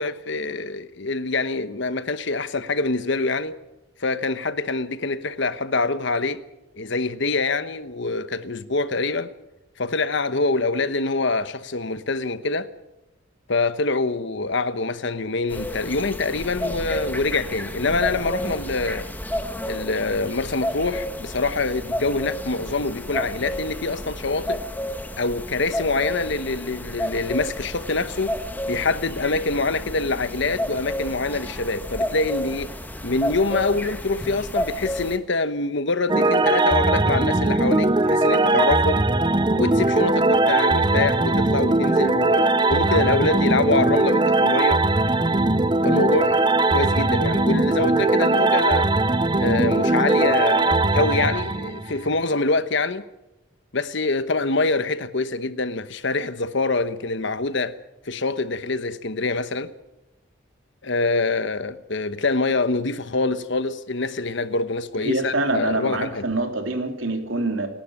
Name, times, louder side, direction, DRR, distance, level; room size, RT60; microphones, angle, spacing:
voice 1, 0.0-3.6 4.0-6.4 6.8-9.3 9.8-12.7 13.5-19.1 19.6-24.6 25.2-28.4 28.7-32.7 33.0-39.1 39.6-44.9 45.8-48.9 49.4-53.1 53.7-57.7 58.1-59.7 60.8-66.3, left 3 dB, 60° left, 1.1 m, -25 dB
sound 1, 15.5-35.2, equal, 10° left, 1.4 m, -31 dB
sound 2, 36.1-52.2, right 2 dB, 20° right, 0.7 m, -20 dB
voice 2, 65.0-67.7, right 2 dB, 70° right, 3.3 m, -25 dB
28.0 x 12.0 x 8.9 m
head